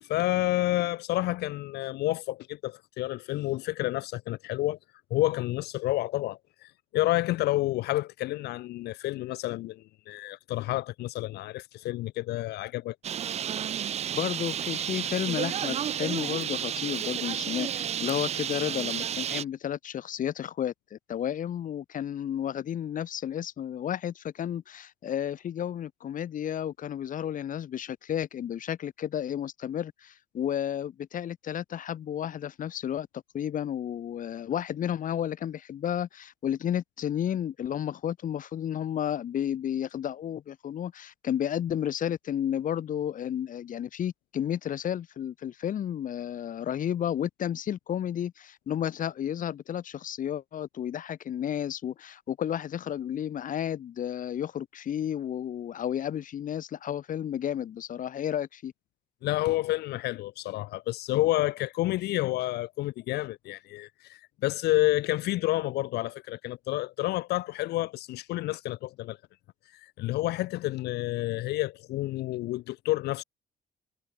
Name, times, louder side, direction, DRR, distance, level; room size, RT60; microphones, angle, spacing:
voice 1, 0.0-4.8 5.1-12.9 59.2-69.2 69.7-73.2, left 17 dB, 90° left, 1.5 m, -29 dB
Bird, 13.0-19.4, right 9 dB, 40° right, 0.5 m, -31 dB
voice 2, 14.1-58.7, left 10 dB, 55° left, 2.5 m, -32 dB
cardioid pair, 120°, 16 cm